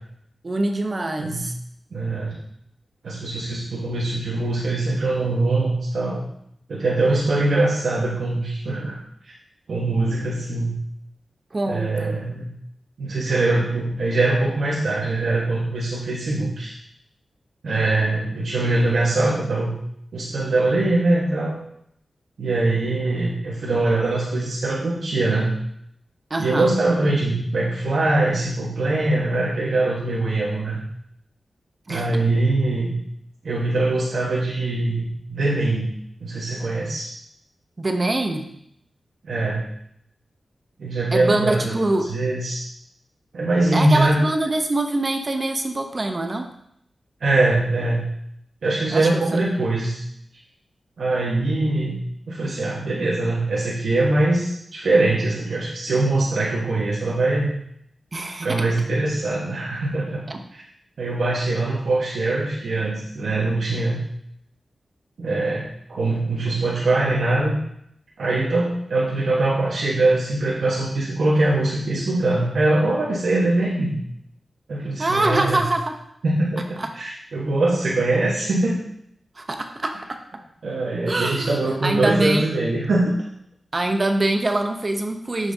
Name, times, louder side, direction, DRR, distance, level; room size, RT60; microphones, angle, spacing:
voice 1, 0.4-1.5 11.5-12.2 26.3-26.7 31.9-32.1 37.8-38.5 41.1-42.2 43.7-46.5 48.9-49.4 58.1-58.6 60.3-60.4 75.0-76.0 76.8-76.9 79.4-80.2 81.1-82.5 83.7-85.5, right 2 dB, 40° right, 5 dB, 0.8 m, -24 dB
voice 2, 1.9-2.4 3.0-6.2 6.7-9.0 9.2-9.3 9.7-10.7 11.7-12.5 13.0-16.7 17.6-19.7 20.1-21.6 22.4-25.5 26.4-30.8 31.9-32.9 33.4-35.9 36.2-37.1 39.2-39.7 40.8-41.8 42.1-42.6 43.3-44.2 47.2-48.1 48.6-50.0 51.0-51.9 52.3-57.5 58.4-60.2 60.5-60.6 61.0-64.0 65.2-67.6 68.2-74.0 74.7-75.6 76.2-78.7 80.6-83.1, right 2 dB, 80° right, -6 dB, 1.3 m, -22 dB
7.1 x 6.9 x 2.7 m, 0.73 s
wide cardioid pair, 75°, 0 cm